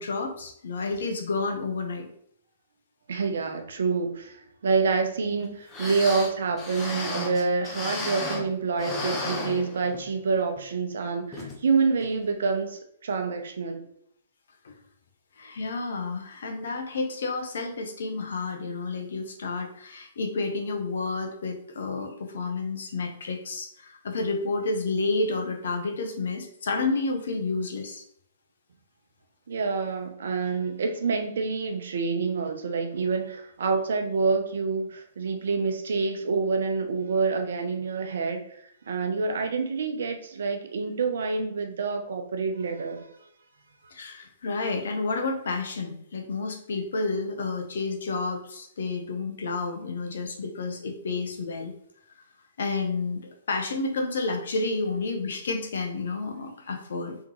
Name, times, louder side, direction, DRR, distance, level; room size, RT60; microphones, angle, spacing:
voice 1, 0.0-2.1 14.6-14.7 15.4-28.0 43.9-51.7 52.6-57.2, left 3 dB, 70° left, 3 dB, 0.9 m, -30 dB
voice 2, 3.1-13.9 29.5-43.1, right 4 dB, 70° right, 5 dB, 0.7 m, -27 dB
sound 1, 5.4-5.5 5.7-8.5 8.8-10.2 10.6-10.7 11.3-11.6 12.0-12.1, left 2 dB, 25° left, 1.0 m, -33 dB
3.7 x 3.5 x 3.0 m, 0.70 s
hypercardioid pair, 125°, 0 cm